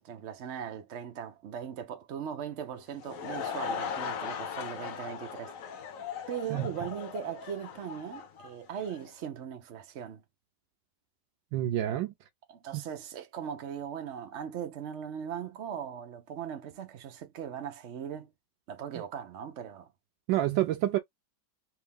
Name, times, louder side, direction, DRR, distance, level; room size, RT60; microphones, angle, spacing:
voice 1, 0.0-5.5 6.3-10.2 12.5-18.3 18.7-19.9, right 8 dB, 65° right, 0.7 m, -39 dB
Laughter / Crowd, 2.8-9.1, left 7 dB, 60° left, 0.9 m, -38 dB
voice 2, 11.5-12.1 12.7-12.8 20.3-21.0, right 13 dB, 80° right, 1.2 m, -28 dB
3.4 x 2.7 x 3.4 m
omnidirectional pair, 2.0 m